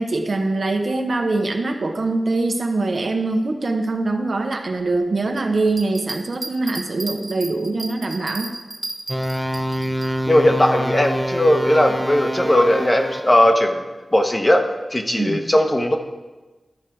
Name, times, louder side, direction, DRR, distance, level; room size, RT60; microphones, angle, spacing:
voice 1, 0.0-8.5 15.2-15.4, right 2 dB, 70° right, 3 dB, 0.9 m, -23 dB
sound 1, 5.7-10.1, right 2 dB, 40° right, 1.1 m, -33 dB
sound 2, 9.1-13.5, equal, 10° right, 0.7 m, -26 dB
voice 2, 10.3-13.9 14.1-16.0, left 1 dB, 30° left, 4 dB, 1.0 m, -18 dB
12.5 x 4.8 x 4.6 m, 1.2 s
cardioid pair, 50°, 0 cm